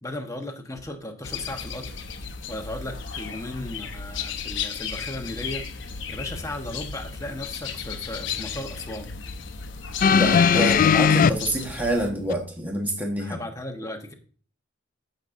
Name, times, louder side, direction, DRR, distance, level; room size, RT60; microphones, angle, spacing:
voice 1, 0.0-1.9 2.5-9.1 10.6-10.7 13.2-14.1, left 1 dB, 15° left, 3 dB, 1.2 m, -36 dB
sound 1, 1.2-12.1, left 6 dB, 70° left, 0.9 m, -35 dB
sound 2, 10.0-11.3 12.3-12.4, left 6 dB, 45° left, 0.3 m, -17 dB
voice 2, 10.2-13.4, right 1 dB, 10° right, 0 dB, 1.5 m, -27 dB
14.5 x 6.5 x 2.6 m, 0.42 s
head